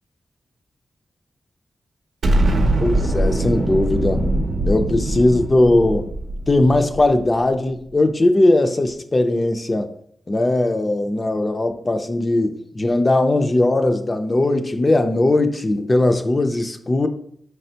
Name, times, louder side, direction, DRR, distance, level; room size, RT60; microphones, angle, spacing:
Explosion, 2.2-7.4, right 1 dB, 75° right, 0.6 m, -22 dB
voice 1, 2.8-4.2 4.7-6.0 6.5-9.9 10.3-17.1, left 2 dB, 30° left, 6 dB, 0.4 m, -19 dB
4.8 x 3.2 x 2.8 m, 0.66 s
wide cardioid pair, 100°, 0 cm